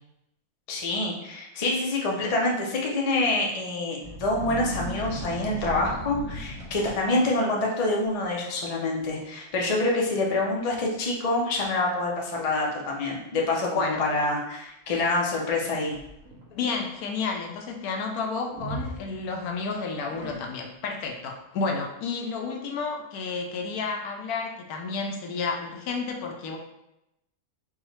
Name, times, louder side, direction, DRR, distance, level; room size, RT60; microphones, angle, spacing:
voice 1, 0.7-15.9, left 2 dB, 45° left, -2 dB, 0.4 m, -26 dB
sound 1, 4.0-7.3 7.9-8.2 8.5-8.9 9.2-9.3 10.0-10.1 10.7-10.8 11.3-11.7 12.5-12.6 15.5-16.5 18.5-19.6 20.1-20.8, right 1 dB, 75° right, 1.5 m, -37 dB
voice 2, 16.5-26.6, left 4 dB, 80° left, 3 dB, 1.1 m, -31 dB
4.7 x 2.3 x 3.0 m, 0.85 s
omnidirectional pair, 1.6 m